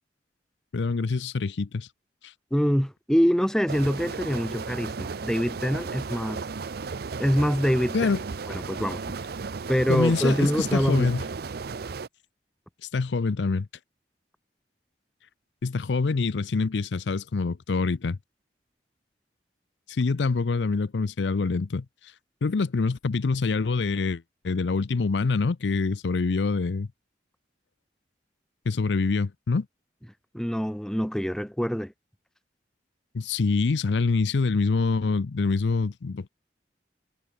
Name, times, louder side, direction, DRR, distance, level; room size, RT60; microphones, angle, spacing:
voice 1, 0.7-1.9 2.2-2.3 7.9-8.2 9.9-11.3 12.8-13.7 15.6-18.2 19.9-22.1 22.4-26.9 28.7-29.7 33.1-36.3, left 4 dB, 80° left, 0.6 m, -25 dB
voice 2, 2.5-6.4 7.2-8.2 8.5-9.0 9.7-11.1 30.3-31.9, equal, 5° left, 1.1 m, -25 dB
sound 1, 3.7-12.1, right 4 dB, 60° right, 0.6 m, -35 dB
head